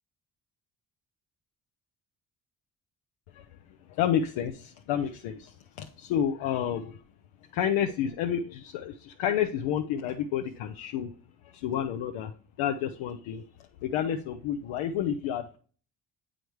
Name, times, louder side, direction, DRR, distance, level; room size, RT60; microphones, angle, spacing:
voice 1, 3.9-7.0 7.5-11.1 11.5-12.3 12.6-13.5 13.8-15.6, left 9 dB, 85° left, 5 dB, 0.6 m, -30 dB
7.8 x 5.0 x 3.1 m, 0.42 s
supercardioid pair, 55°, 46 cm